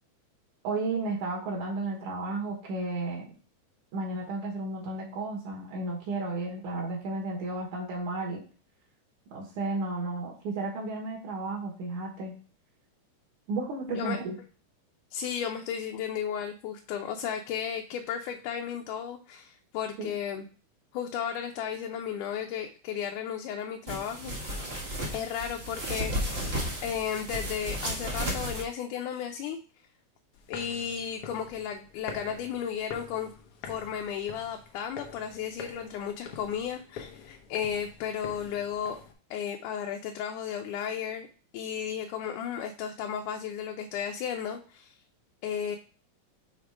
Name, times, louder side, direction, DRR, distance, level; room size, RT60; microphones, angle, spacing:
voice 1, 0.6-3.3 3.9-8.4 9.3-12.3 13.5-14.4 20.0-20.1, right 2 dB, 75° right, -1 dB, 2.7 m, -33 dB
voice 2, 13.9-14.2 15.1-20.5 20.9-24.3 25.1-29.6 30.5-33.3 33.7-39.0 39.3-41.3 41.5-45.0 45.4-45.8, left 8 dB, 85° left, 3 dB, 2.1 m, -34 dB
sound 1, 23.9-28.6, equal, 50° right, 0.7 m, -33 dB
sound 2, 30.3-39.1, left 6 dB, 65° left, 1.5 m, -46 dB
6.2 x 3.6 x 4.7 m, 0.39 s
omnidirectional pair, 3.6 m